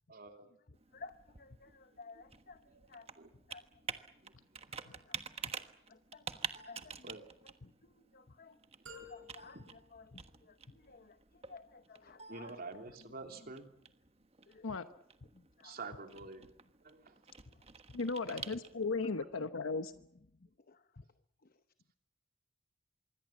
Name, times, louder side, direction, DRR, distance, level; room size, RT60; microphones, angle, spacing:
voice 1, 0.1-0.5 2.7-2.9 3.2-3.3 4.2-4.3 7.0-7.3 9.0-9.1 12.3-13.7 15.6-16.5 16.8-17.2 19.0-19.1, right 3 dB, 50° right, 5 dB, 3.1 m, -47 dB
Computer keyboard, 0.7-19.0, right 6 dB, 30° right, 1.3 m, -49 dB
voice 2, 0.9-2.6 2.9-3.1 3.3-3.7 4.9-5.2 5.5-5.6 5.9-6.3 6.6-7.2 7.4-8.6 8.9-9.6 9.9-12.6 13.4-13.5 14.5-14.8 15.3-15.8 17.5-17.6 18.2-18.6 20.3-21.0 21.4-21.6, left 4 dB, 45° left, 11 dB, 0.9 m, -55 dB
sound 1, 8.9-10.9, left 1 dB, 85° right, 5.0 m, -55 dB
voice 3, 17.9-19.9, left 4 dB, 85° left, 10 dB, 1.0 m, -36 dB
26.0 x 22.5 x 7.4 m, 0.75 s
head